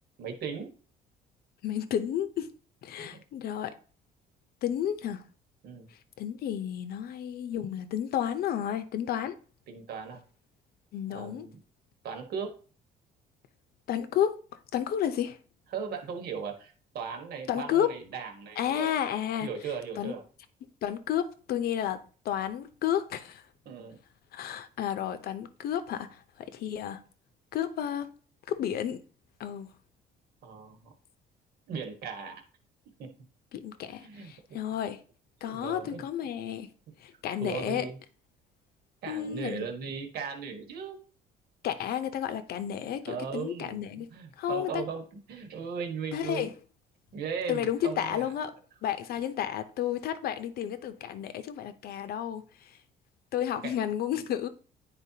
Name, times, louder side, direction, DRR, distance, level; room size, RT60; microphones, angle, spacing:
voice 1, 0.2-0.7 3.0-3.2 5.6-5.9 9.7-10.2 11.1-11.6 12.0-12.6 15.7-19.0 19.4-20.2 23.6-24.0 30.4-30.9 31.7-32.4 33.0-33.1 34.0-34.6 35.4-36.1 37.4-38.0 39.0-41.0 43.1-45.0 45.3-46.5 47.1-48.3 53.6-53.7, right 6 dB, 70° right, 1.4 m, -37 dB
voice 2, 1.6-2.5 2.8-3.7 4.6-5.2 6.2-9.4 10.9-11.5 13.9-14.4 14.7-15.4 17.5-17.9 18.6-19.5 20.0-20.1 20.8-23.4 24.3-26.2 26.5-27.0 27.5-28.1 28.5-29.0 29.4-29.7 33.5-35.0 35.4-36.7 37.0-37.9 39.1-39.7 41.6-44.1 44.4-44.8 46.1-46.5 47.5-48.6 48.8-52.4 53.3-54.5, left 10 dB, 65° left, 0.7 m, -31 dB
9.9 x 4.3 x 2.8 m
cardioid pair, 110°, 17 cm